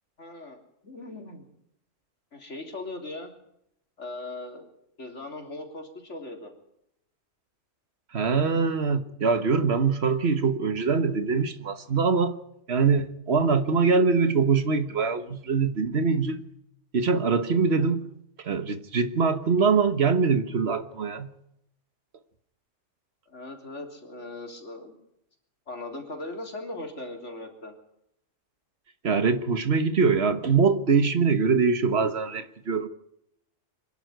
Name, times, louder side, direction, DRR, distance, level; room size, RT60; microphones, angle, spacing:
voice 1, 0.2-1.5 2.3-3.3 4.0-4.7 5.0-6.5 17.7-18.0 23.3-25.0 25.7-27.7, left 2 dB, 60° left, 3.8 m, -39 dB
voice 2, 8.1-12.3 12.7-16.4 16.9-18.1 18.4-21.3 29.0-32.9, right 5 dB, 50° right, 1.5 m, -23 dB
24.5 x 11.5 x 9.2 m
omnidirectional pair, 1.4 m